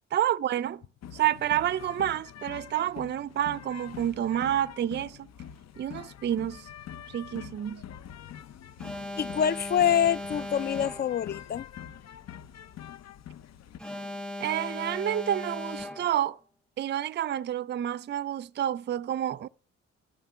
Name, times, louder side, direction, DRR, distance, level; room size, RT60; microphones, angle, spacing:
voice 1, 0.1-0.8 1.1-5.3 5.8-6.7 7.1-7.8 14.4-16.4 16.8-19.5, right 11 dB, 35° right, 0.4 m, -29 dB
sound 1, 1.0-13.8, left 9 dB, 60° left, 0.7 m, -45 dB
Alarm, 8.8-11.3 13.8-16.3, left 2 dB, 5° left, 1.5 m, -38 dB
voice 2, 9.2-11.7, left 9 dB, 35° left, 0.4 m, -26 dB
12.5 x 5.9 x 6.7 m
cardioid pair, 90°, 30 cm